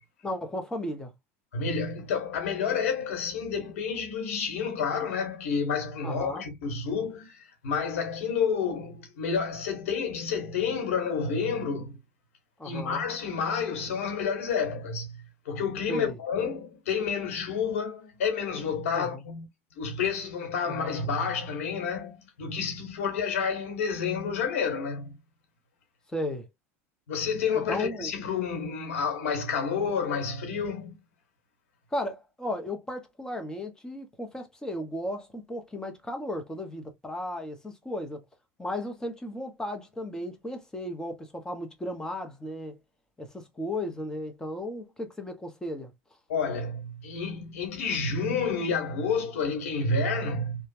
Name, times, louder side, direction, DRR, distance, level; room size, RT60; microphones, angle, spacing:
voice 1, 0.2-1.1 6.0-6.5 12.6-13.0 15.9-16.2 18.9-19.2 20.6-21.1 26.1-26.5 27.5-28.1 31.9-38.2 38.6-42.8 43.2-45.9, left 1 dB, 10° left, 1.0 m, -35 dB
voice 2, 1.5-12.0 12.6-15.1 15.4-19.5 19.8-25.2 27.1-31.0 46.3-50.7, left 5 dB, 80° left, 1.3 m, -30 dB
3.0 x 2.3 x 2.6 m
hypercardioid pair, 95°, 7 cm